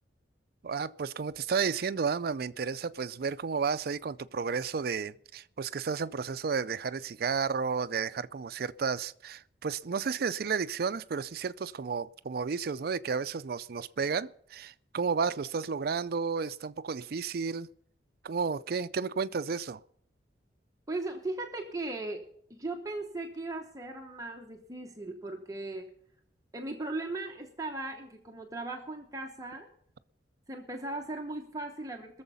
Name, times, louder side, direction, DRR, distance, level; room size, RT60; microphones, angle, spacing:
voice 1, 0.6-17.7 18.2-19.8, right 5 dB, 60° right, 0.4 m, -32 dB
voice 2, 20.9-25.9 26.5-29.7 30.5-32.2, right 2 dB, 20° right, 0.9 m, -38 dB
21.5 x 7.1 x 5.5 m
head